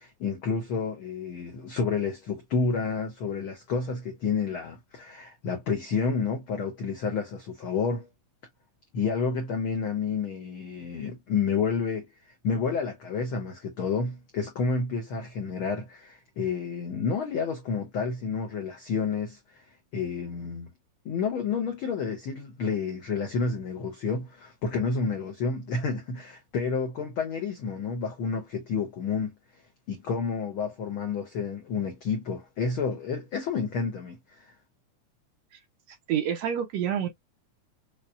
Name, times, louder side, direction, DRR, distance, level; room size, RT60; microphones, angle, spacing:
voice 1, 0.0-8.1 8.9-12.1 12.4-19.6 19.9-20.7 21.0-29.3 29.9-34.4, left 5 dB, 80° left, 1.1 m, -30 dB
voice 2, 35.9-37.1, right 9 dB, 70° right, 1.7 m, -28 dB
5.6 x 2.2 x 2.4 m
omnidirectional pair, 3.5 m